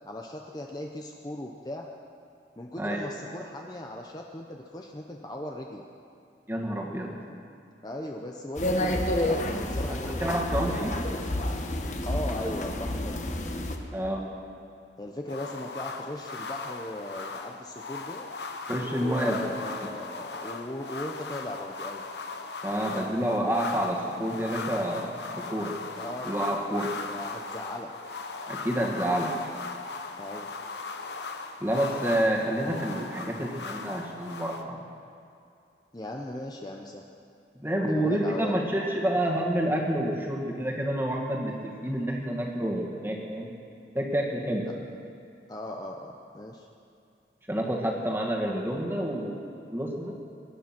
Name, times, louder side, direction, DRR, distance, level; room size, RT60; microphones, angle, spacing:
voice 1, 0.0-1.9 2.6-5.8 7.8-10.4 10.8-11.1 12.0-13.2 15.0-18.3 19.0-22.0 26.0-26.4 27.0-27.9 30.2-30.5 35.9-37.1 37.8-38.6 45.5-46.7, left 1 dB, 20° left, 1 dB, 0.8 m, -38 dB
voice 2, 6.5-7.1 10.1-11.0 13.9-14.3 18.7-19.6 19.9-20.0 22.6-25.8 26.2-26.9 28.5-29.4 31.6-34.8 37.6-43.5 43.9-44.7 47.5-49.4 49.7-50.1, right 1 dB, 15° right, -1 dB, 2.0 m, -28 dB
sound 1, 8.6-13.8, left 1 dB, 45° left, 1.3 m, -29 dB
sound 2, 15.3-34.6, left 4 dB, 80° left, 1.0 m, -38 dB
23.5 x 10.0 x 6.1 m, 2.5 s
head